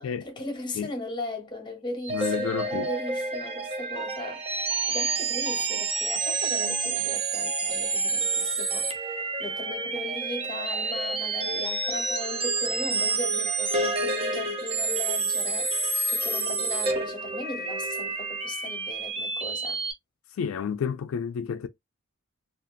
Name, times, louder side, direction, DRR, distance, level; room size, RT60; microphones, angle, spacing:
voice 1, 0.0-4.4 4.9-9.0 9.4-19.8, left 2 dB, 25° left, 0.9 m, -37 dB
sound 1, 2.0-19.9, right 3 dB, 30° right, 0.5 m, -29 dB
voice 2, 2.1-2.9 20.3-21.7, left 7 dB, 85° left, 0.3 m, -30 dB
2.5 x 2.4 x 2.4 m
head